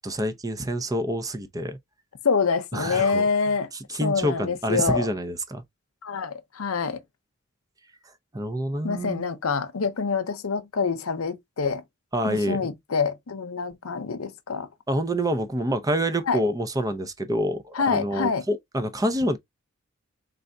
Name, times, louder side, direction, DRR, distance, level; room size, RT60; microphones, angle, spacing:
voice 1, 0.0-1.8 2.7-3.3 3.9-5.6 8.3-9.3 12.1-12.7 14.9-19.4, equal, 15° right, 0.6 m, -27 dB
voice 2, 2.2-3.7 4.0-5.1 6.0-7.0 8.8-11.8 12.2-14.7 16.3-16.4 17.7-18.4, left 5 dB, 90° left, 0.7 m, -26 dB
3.8 x 3.4 x 2.7 m
head